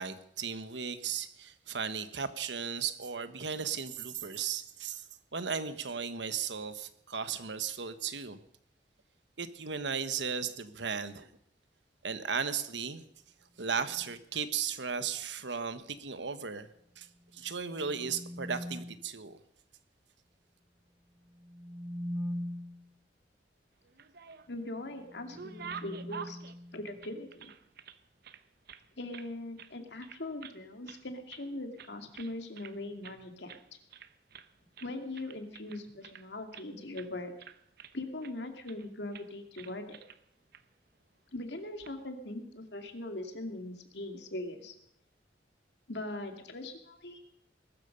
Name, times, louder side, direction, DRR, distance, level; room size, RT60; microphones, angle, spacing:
voice 1, 0.0-5.0 5.3-8.4 9.4-11.3 12.0-13.0 13.6-16.7 17.0-17.1 17.3-19.4, right 6 dB, 90° right, 12 dB, 1.2 m, -36 dB
sound 1, 13.7-14.2 17.3-19.1 21.3-23.0 24.9-27.3, equal, 20° right, 0.9 m, -42 dB
sound 2, 23.8-24.7 25.0-28.0 28.2-29.3 29.6-29.8 30.0-30.6 30.9-31.5 31.8-32.8 33.0-33.2 33.5-33.6 33.9-34.5 34.8-36.7 36.9-37.1 37.4-38.3 38.7-38.9 39.1-39.3 39.6-40.2 40.5-40.6 41.6-41.9, right 7 dB, 60° right, 0.9 m, -48 dB
voice 2, 24.5-26.4 26.7-27.5 29.0-33.6 34.8-37.3 37.9-40.0 41.3-44.7 45.9-47.2, left 2 dB, 70° left, 5 dB, 2.5 m, -41 dB
21.0 x 12.5 x 5.3 m, 0.71 s
head